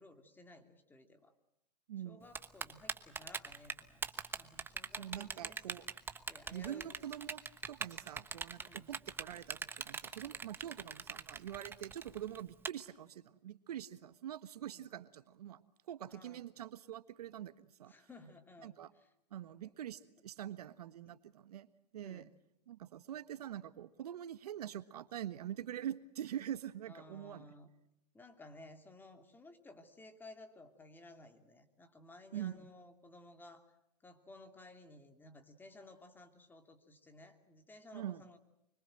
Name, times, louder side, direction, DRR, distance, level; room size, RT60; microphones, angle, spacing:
voice 1, 0.0-1.3 2.0-5.7 6.3-7.0 8.6-8.9 14.7-14.8 16.1-16.4 17.9-19.1 19.6-19.7 21.0-21.2 22.0-22.3 26.9-27.7 28.1-33.7 34.0-38.4, left 2 dB, 10° left, 7 dB, 2.7 m, -57 dB
voice 2, 1.9-2.2 5.0-5.8 6.5-7.4 7.7-17.9 18.6-18.9 19.3-21.7 21.9-22.3 22.7-27.4 32.3-32.7 37.9-38.2, right 11 dB, 70° right, 13 dB, 1.4 m, -45 dB
Typing, 2.3-12.7, right 5 dB, 10° right, 1.1 m, -41 dB
25.5 x 24.0 x 7.8 m, 0.78 s
hypercardioid pair, 130°, 21 cm